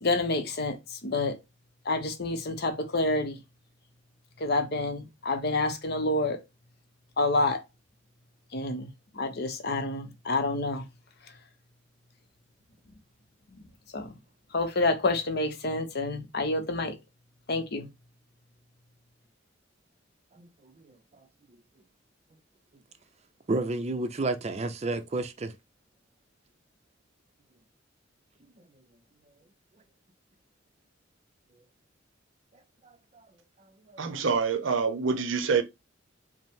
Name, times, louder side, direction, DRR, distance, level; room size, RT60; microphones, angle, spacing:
voice 1, 0.0-0.8 1.0-1.4 1.9-3.4 4.4-6.4 7.2-7.6 8.5-8.9 9.2-10.8 13.9-14.1 14.5-17.0 17.5-17.9, left 2 dB, 55° left, 0.7 m, -28 dB
voice 2, 20.4-20.7 23.5-25.5 33.9-34.0, right 2 dB, 35° right, 0.5 m, -31 dB
voice 3, 34.0-35.6, right 5 dB, 75° right, 0.6 m, -26 dB
5.2 x 2.0 x 3.6 m
head